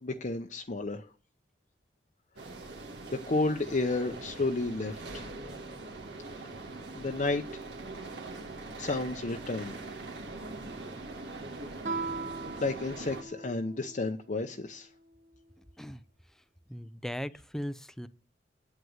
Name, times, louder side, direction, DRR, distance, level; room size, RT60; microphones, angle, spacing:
voice 1, 0.0-1.0 3.1-5.3 6.9-7.4 8.8-9.7 12.6-14.9, left 2 dB, 45° left, 0.7 m, -31 dB
sound 1, 2.4-13.2, right 2 dB, 75° right, 2.0 m, -42 dB
Guitar, 11.8-14.3, right 4 dB, 45° right, 1.1 m, -39 dB
voice 2, 16.7-18.1, equal, 5° left, 0.5 m, -38 dB
9.3 x 8.0 x 7.8 m
head